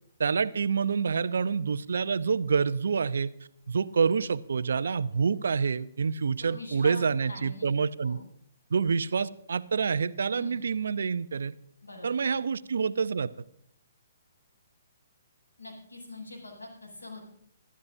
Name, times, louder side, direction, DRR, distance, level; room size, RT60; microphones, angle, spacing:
voice 1, 0.2-3.3 3.7-8.2 8.7-11.5 12.0-13.4, right 5 dB, 65° right, 15 dB, 0.6 m, -27 dB
voice 2, 6.4-7.0 7.2-7.7 8.0-8.3 10.3-10.6 11.8-12.2 15.6-17.2, left 2 dB, 80° left, -1 dB, 7.9 m, -44 dB
25.5 x 13.5 x 2.7 m, 0.67 s
figure-of-eight pair, 130°, 0 cm